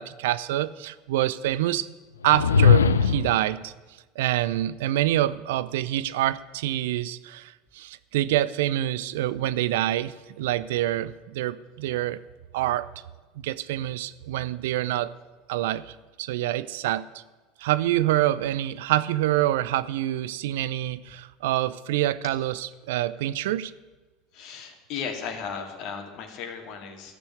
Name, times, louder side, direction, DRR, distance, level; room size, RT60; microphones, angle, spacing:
voice 1, 0.0-1.9 2.2-3.7 4.2-12.2 12.5-12.9 13.4-15.1 15.5-17.2 17.6-23.7, right 14 dB, 70° right, 17 dB, 0.5 m, -26 dB
sound 1, 2.2-3.4, left 6 dB, 85° left, 0.6 m, -19 dB
voice 2, 24.3-27.1, left 6 dB, 55° left, 4 dB, 2.3 m, -35 dB
14.0 x 7.1 x 9.8 m, 1.2 s
figure-of-eight pair, 75°, 0 cm